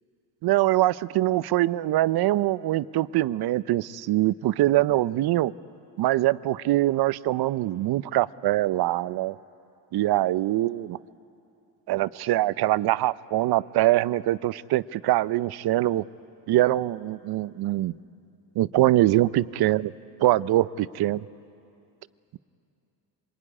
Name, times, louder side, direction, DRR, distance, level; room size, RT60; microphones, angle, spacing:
voice 1, 0.4-5.5 6.0-9.4 9.9-11.0 11.9-16.0 16.5-17.9 18.6-19.9 20.2-21.3, right 15 dB, 50° right, 17 dB, 0.7 m, -23 dB
26.5 x 21.5 x 9.9 m, 2.6 s
supercardioid pair, 85°, 48 cm